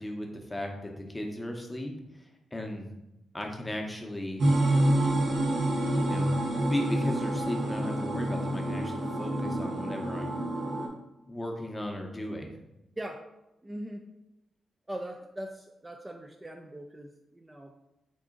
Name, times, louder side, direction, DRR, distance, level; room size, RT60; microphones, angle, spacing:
voice 1, 0.0-2.9 3.3-4.4 6.0-10.4 11.3-12.5, left 1 dB, 15° left, 2 dB, 0.8 m, -36 dB
sound 1, 4.4-10.9, right 1 dB, 70° right, 0.8 m, -27 dB
voice 2, 13.6-14.0 14.9-17.7, right 1 dB, 20° right, 3 dB, 0.3 m, -40 dB
3.8 x 2.4 x 3.8 m, 0.91 s
cardioid pair, 60°, 0 cm